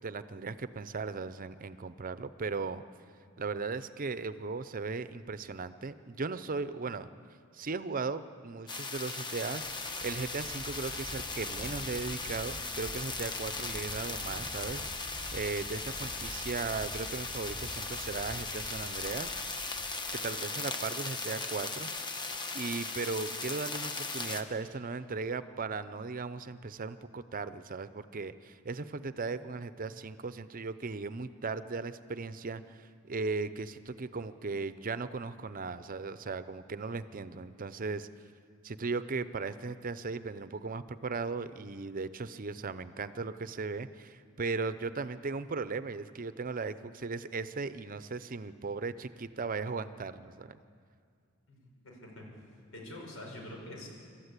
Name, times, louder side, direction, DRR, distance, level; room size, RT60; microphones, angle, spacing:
voice 1, 0.0-2.8 3.4-7.1 7.5-15.0 15.3-19.3 20.1-22.1 22.5-38.1 38.6-50.6, right 4 dB, 40° right, 13 dB, 0.6 m, -37 dB
sound 1, 8.7-24.4, left 3 dB, 20° left, 1.1 m, -38 dB
sound 2, 9.7-20.4, right 1 dB, 10° right, 1.2 m, -48 dB
voice 2, 51.5-52.2 52.7-53.9, left 1 dB, 80° left, 0 dB, 5.8 m, -45 dB
27.0 x 13.0 x 8.3 m, 2.2 s
head